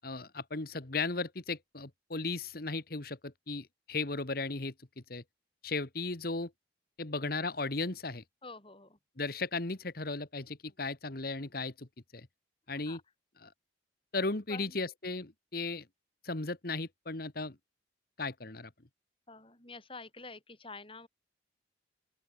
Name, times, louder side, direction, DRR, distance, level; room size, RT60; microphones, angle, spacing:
voice 1, 0.0-4.7 5.1-5.2 5.6-6.5 7.0-8.2 9.2-11.9 12.1-12.3 12.7-13.0 13.4-13.5 14.1-15.8 16.2-17.5 18.2-18.7, left 3 dB, 55° left, 1.6 m, -36 dB
voice 2, 8.4-9.0 12.7-13.0 14.5-14.8 19.3-21.1, left 3 dB, 30° left, 6.2 m, -48 dB
open air
head